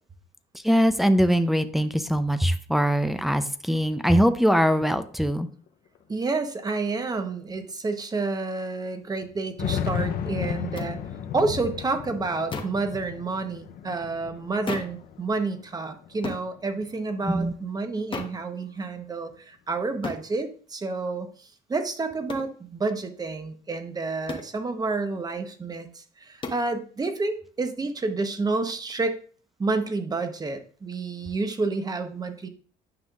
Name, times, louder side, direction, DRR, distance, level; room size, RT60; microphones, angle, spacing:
voice 1, 0.6-5.5 17.3-17.5, equal, ahead, 9 dB, 0.6 m, -22 dB
sound 1, 5.7-5.8 6.0-6.1 6.9-7.0 7.5-7.6 9.2-15.6 16.0-17.0, left 8 dB, 60° left, 0.7 m, -34 dB
voice 2, 6.1-11.0 11.3-29.2 29.6-32.5, right 3 dB, 20° right, 7 dB, 1.0 m, -29 dB
sound 2, 10.8-10.9 12.5-12.8 14.7-15.0 16.2-16.5 18.1-18.4 20.0-20.3 22.3-22.5 24.3-24.5 26.4-26.7, left 3 dB, 30° left, 1.0 m, -34 dB
9.6 x 5.6 x 2.4 m, 0.44 s
cardioid pair, 110°, 17 cm